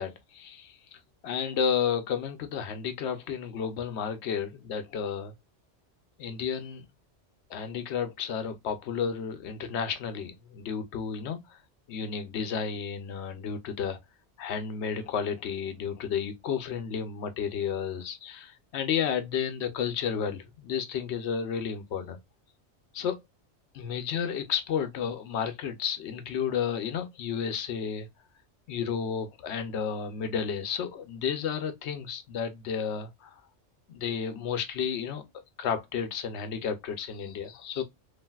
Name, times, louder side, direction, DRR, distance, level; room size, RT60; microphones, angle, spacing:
voice 1, 0.0-5.3 6.2-6.8 7.5-11.6 11.9-14.0 14.4-22.2 22.9-23.2 23.7-28.1 28.7-33.4 33.9-35.2 35.6-37.8, left 7 dB, 75° left, 0.9 m, -32 dB
3.3 x 2.4 x 2.2 m
omnidirectional pair, 1.2 m